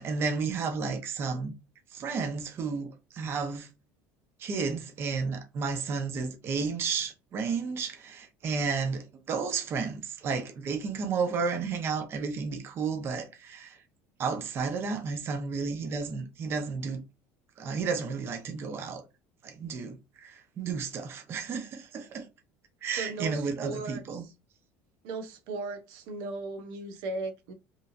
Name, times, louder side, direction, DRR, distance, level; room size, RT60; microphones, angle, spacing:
voice 1, 0.0-1.5 1.9-3.7 4.4-13.8 14.2-17.0 17.6-19.0 19.4-22.3 22.8-24.2, right 5 dB, 40° right, 1.1 m, -32 dB
voice 2, 23.0-24.0 25.0-27.5, right 3 dB, 75° right, 1.0 m, -37 dB
5.2 x 3.3 x 2.7 m
cardioid pair, 140°, 7 cm